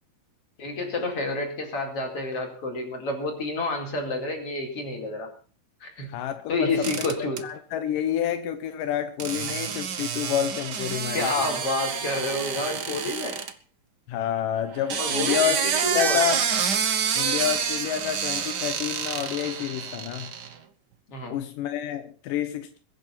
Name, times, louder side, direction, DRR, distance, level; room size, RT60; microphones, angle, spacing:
voice 1, 0.6-5.3 5.8-6.2 6.5-7.5 11.1-13.4 15.0-16.2 21.1-21.4, left 2 dB, 45° left, 2 dB, 5.4 m, -29 dB
voice 2, 6.0-7.0 7.4-11.5 12.9-13.0 14.1-16.4 17.2-20.3 21.3-22.8, left 10 dB, 85° left, 9 dB, 2.7 m, -29 dB
sound 1, 6.8-7.4 9.2-13.5 14.7-20.5, right 7 dB, 55° right, 1.2 m, -28 dB
22.0 x 10.0 x 5.8 m, 0.41 s
omnidirectional pair, 3.7 m